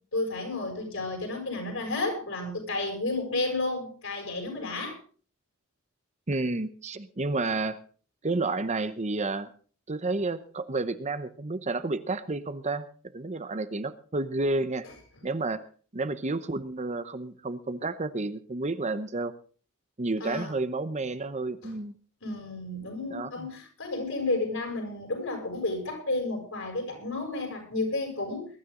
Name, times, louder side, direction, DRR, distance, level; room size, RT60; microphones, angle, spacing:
voice 1, 0.1-5.0 20.2-20.5 21.6-21.8 22.2-28.5, left 2 dB, 65° left, 2 dB, 7.0 m, -32 dB
voice 2, 6.3-7.8 8.2-9.5 9.9-12.9 13.1-14.8 15.2-15.6 15.9-19.3 20.0-21.9 23.1-23.5, right 3 dB, 35° right, 12 dB, 0.8 m, -30 dB
21.0 x 13.0 x 3.8 m, 0.40 s
head